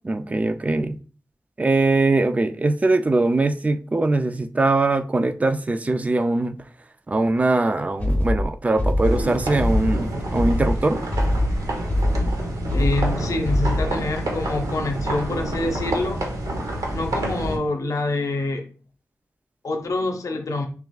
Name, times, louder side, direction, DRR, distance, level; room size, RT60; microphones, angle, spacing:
voice 1, 0.1-1.0 1.6-6.6 7.1-11.0, right 2 dB, 25° right, 0.4 m, -21 dB
sound 1, 8.0-14.1, left 1 dB, 25° left, 0.8 m, -23 dB
sound 2, 9.0-17.6, right 1 dB, 80° right, 0.9 m, -28 dB
voice 2, 12.7-16.2 16.9-18.7 19.6-20.7, left 2 dB, 70° left, 0.7 m, -26 dB
6.2 x 2.4 x 2.3 m
wide cardioid pair, 100°, 6 cm